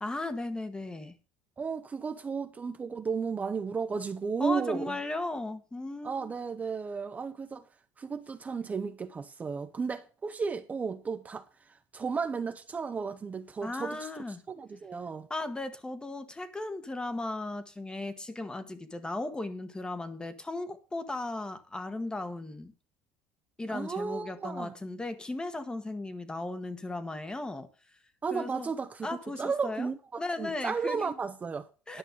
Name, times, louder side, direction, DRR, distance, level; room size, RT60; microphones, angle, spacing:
voice 1, 0.0-1.1 4.4-6.3 13.6-14.4 15.3-22.7 23.6-27.7 28.3-28.7 29.0-29.9 30.2-31.1 31.9-32.0, left 2 dB, 15° left, 1.3 m, -36 dB
voice 2, 1.6-5.0 6.0-7.7 8.0-11.5 11.9-14.1 14.5-15.3 23.7-24.7 28.2-30.0 30.4-31.7 31.9-32.0, right 5 dB, 25° right, 0.8 m, -34 dB
11.0 x 5.9 x 6.6 m
supercardioid pair, 105°, 6 cm